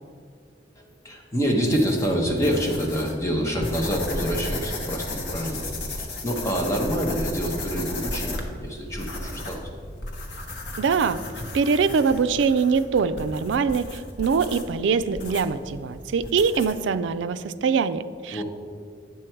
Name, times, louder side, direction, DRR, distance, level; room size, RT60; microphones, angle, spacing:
voice 1, 0.8-5.7 6.0-9.7 18.3-18.4, equal, 15° left, -1 dB, 1.1 m, -26 dB
sound 1, 1.6-16.9, left 1 dB, 80° left, 1.1 m, -34 dB
voice 2, 10.8-11.2 11.5-18.4, right 5 dB, 80° right, 12 dB, 0.4 m, -23 dB
9.1 x 6.3 x 4.5 m, 2.1 s
head